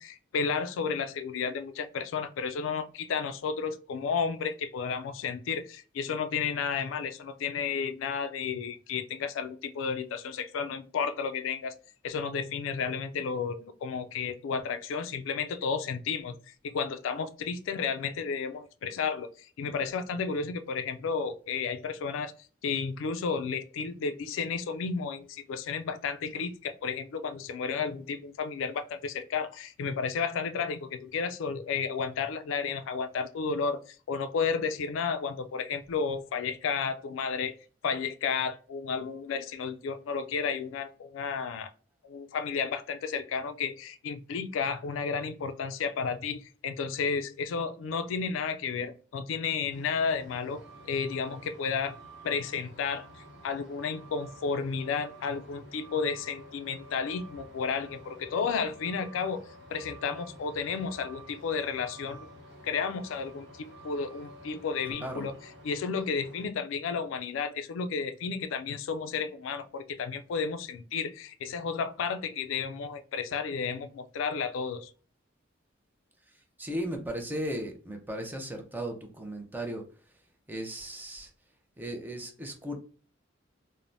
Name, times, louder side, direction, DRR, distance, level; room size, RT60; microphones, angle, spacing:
voice 1, 0.0-11.7 12.0-22.3 22.6-37.5 37.8-41.7 42.0-51.9 52.2-59.4 59.7-62.3 62.6-65.3 65.6-74.9, left 5 dB, 80° left, 0.3 m, -32 dB
Truck, 49.7-66.5, right 1 dB, 60° right, 0.9 m, -50 dB
voice 2, 76.6-79.8 80.5-81.3 81.8-82.8, equal, 10° right, 0.4 m, -36 dB
3.2 x 2.0 x 2.5 m
head